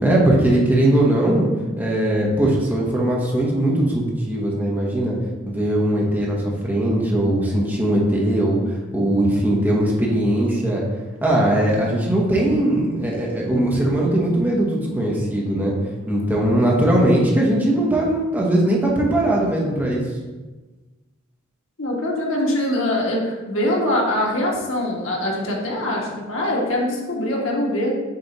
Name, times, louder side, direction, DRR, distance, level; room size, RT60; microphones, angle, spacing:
voice 1, 0.0-1.5 1.8-5.2 5.5-10.8 11.2-15.7 16.1-20.0, right 1 dB, 10° right, -4 dB, 1.1 m, -20 dB
voice 2, 21.8-27.9, left 1 dB, 80° left, -2 dB, 1.4 m, -23 dB
6.7 x 3.4 x 4.2 m, 1.2 s
head